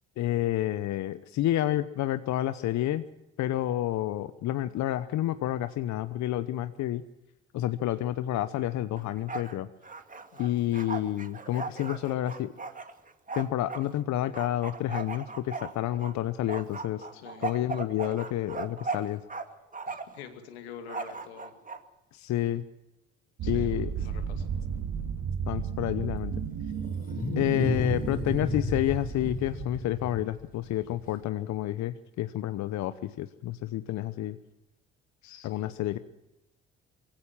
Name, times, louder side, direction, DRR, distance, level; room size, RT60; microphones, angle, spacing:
voice 1, 0.2-3.0 3.4-7.0 7.5-9.7 10.4-12.5 13.3-17.1 17.4-19.2 22.1-22.6 23.5-23.9 25.5-26.3 27.4-34.4 35.4-36.0, left 13 dB, 60° left, 13 dB, 0.9 m, -29 dB
Bark, 9.0-9.5 9.8-13.8 14.3-16.1 16.5-19.4 19.7-20.2 20.9-21.8, right 4 dB, 25° right, 2.3 m, -37 dB
voice 2, 10.3-10.7 17.1-17.5 19.9-21.5 23.4-24.5 35.2-35.7, left 7 dB, 85° left, 7 dB, 2.5 m, -47 dB
sound 1, 23.4-30.2, right 7 dB, 60° right, 2.3 m, -34 dB
Wild animals, 26.2-31.2, left 2 dB, 25° left, 3.7 m, -33 dB
23.0 x 16.5 x 7.4 m, 0.95 s
hypercardioid pair, 55°, 32 cm